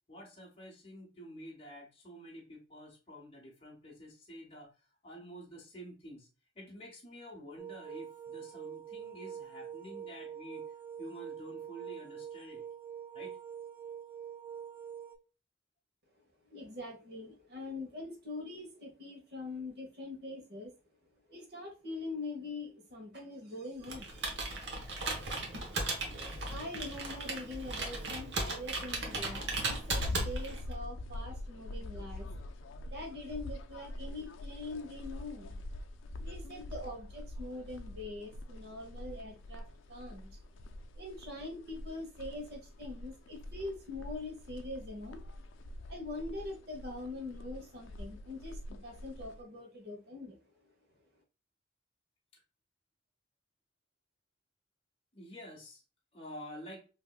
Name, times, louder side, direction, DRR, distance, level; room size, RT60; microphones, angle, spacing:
voice 1, 0.1-4.7 5.0-6.3 6.6-10.6 11.0-12.6 13.1-13.4 55.1-55.8 56.1-56.9, equal, 30° left, -3 dB, 0.9 m, -49 dB
sound 1, 7.6-15.2, right 8 dB, 10° right, 0.4 m, -45 dB
voice 2, 16.5-20.7 21.3-24.3 26.5-32.3 32.8-35.6 36.2-40.3 40.9-45.2 45.9-50.4, left 2 dB, 55° right, 0 dB, 1.1 m, -43 dB
Computer keyboard, 23.8-30.7, right 2 dB, 70° right, 1.0 m, -36 dB
sound 2, 29.7-49.4, left 2 dB, 90° left, 0.4 m, -44 dB
3.5 x 2.8 x 2.3 m, 0.33 s
head